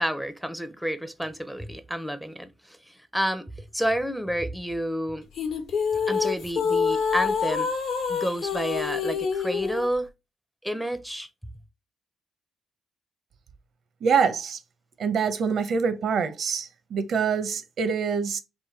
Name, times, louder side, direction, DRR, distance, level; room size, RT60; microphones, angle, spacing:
voice 1, 0.0-5.3 6.1-7.7 8.1-10.1 10.6-11.3, equal, ahead, 0.5 m, -30 dB
sound 1, 5.4-9.9, left 6 dB, 70° left, 1.0 m, -26 dB
voice 2, 14.0-14.6 15.0-18.4, right 6 dB, 65° right, 0.7 m, -25 dB
3.7 x 2.5 x 4.3 m
cardioid pair, 90°, 0 cm